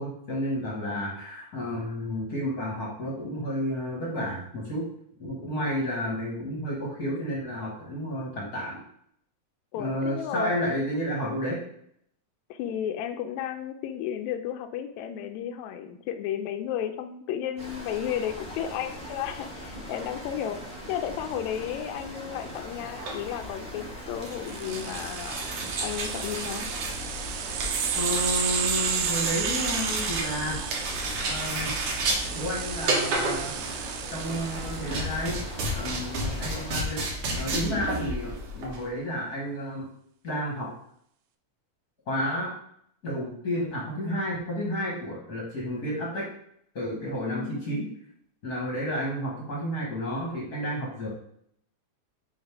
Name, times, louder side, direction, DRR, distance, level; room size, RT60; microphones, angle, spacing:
voice 1, 0.0-4.8 5.2-8.8 9.7-11.6 28.0-30.6 31.2-31.7 32.3-35.4 35.7-39.9 40.2-40.7 42.1-42.5 43.0-46.3 46.7-47.9 48.4-51.1, equal, 45° left, -3 dB, 1.3 m, -31 dB
voice 2, 9.7-10.6 12.5-20.6 20.9-25.5 25.8-26.7 47.2-47.7, left 10 dB, 80° left, 6 dB, 1.8 m, -33 dB
sound 1, 17.6-36.7, equal, 20° right, 1.5 m, -41 dB
sound 2, 22.8-38.8, right 2 dB, 65° right, 2.2 m, -32 dB
sound 3, 24.5-35.6, right 8 dB, 80° right, 1.9 m, -33 dB
6.5 x 3.2 x 4.7 m, 0.69 s
omnidirectional pair, 3.3 m